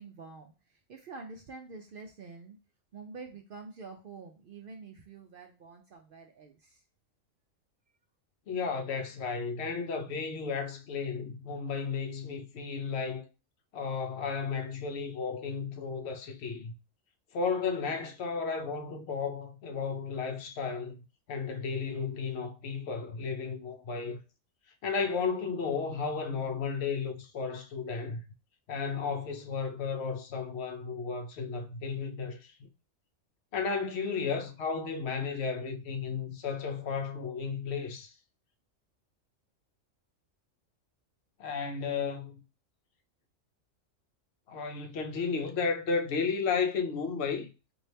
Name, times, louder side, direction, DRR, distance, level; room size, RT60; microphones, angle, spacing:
voice 1, 0.0-2.6 2.9-6.8, right 4 dB, 65° right, 0.5 m, -47 dB
voice 2, 8.5-13.3 13.7-16.7 17.3-21.0 21.3-24.2 24.8-28.2 28.7-32.7 33.5-38.1 41.4-42.3 44.5-47.5, left 5 dB, 60° left, 0.8 m, -33 dB
4.1 x 2.6 x 3.3 m
omnidirectional pair, 1.3 m